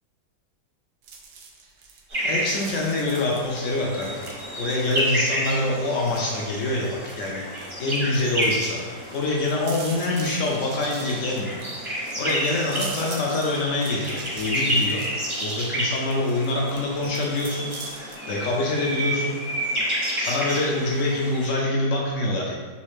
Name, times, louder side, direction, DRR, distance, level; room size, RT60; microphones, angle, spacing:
sound 1, 1.0-18.2, right 4 dB, 75° right, 1.1 m, -44 dB
sound 2, 2.1-21.5, equal, 30° right, 0.5 m, -30 dB
voice 1, 2.2-4.3 4.6-7.5 7.8-8.8 9.1-11.6 12.2-15.1 15.4-17.7 18.0-19.3 20.2-22.5, left 2 dB, 70° left, -3 dB, 0.7 m, -25 dB
4.1 x 2.4 x 3.1 m, 1.4 s
omnidirectional pair, 1.8 m